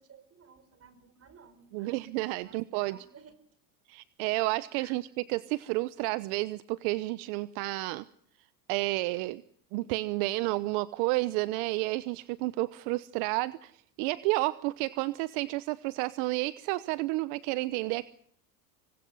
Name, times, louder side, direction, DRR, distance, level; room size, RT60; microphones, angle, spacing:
voice 1, 0.0-3.3 4.7-5.0, right 6 dB, 30° right, 13 dB, 4.9 m, -56 dB
voice 2, 1.7-3.0 3.9-8.0 8.7-9.4 9.7-18.1, right 20 dB, 65° right, 16 dB, 1.0 m, -31 dB
26.5 x 22.0 x 5.5 m, 0.65 s
supercardioid pair, 125°, 48 cm